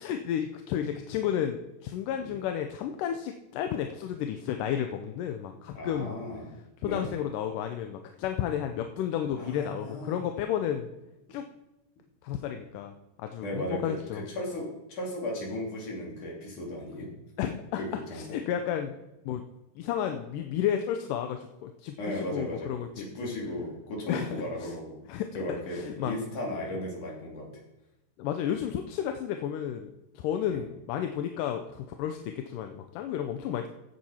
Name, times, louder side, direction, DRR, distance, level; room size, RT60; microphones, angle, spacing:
voice 1, 0.0-6.2 6.8-10.9 11.3-11.5 12.2-12.9 13.2-14.2 17.4-17.8 18.1-19.0 19.3-19.4 19.8-23.1 24.1-24.3 24.6-24.7 25.1-25.3 25.7-26.1 28.2-33.7, left 9 dB, 80° left, 6 dB, 2.2 m, -32 dB
voice 2, 5.8-6.6 6.8-7.1 9.4-10.2 13.4-17.1 17.8-18.2 22.0-25.0 25.3-27.5 30.4-30.6, left 1 dB, 65° left, -3 dB, 4.6 m, -36 dB
15.5 x 7.8 x 4.4 m, 0.94 s
omnidirectional pair, 3.9 m